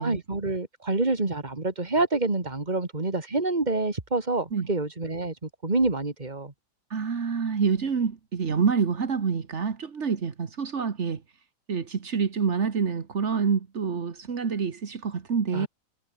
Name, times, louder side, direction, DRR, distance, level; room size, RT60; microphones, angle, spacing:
voice 1, 0.0-6.5 15.5-15.7, right 2 dB, 15° right, 2.4 m, -27 dB
voice 2, 6.9-11.2 11.7-15.7, right 6 dB, 55° right, 0.7 m, -27 dB
omnidirectional pair, 3.6 m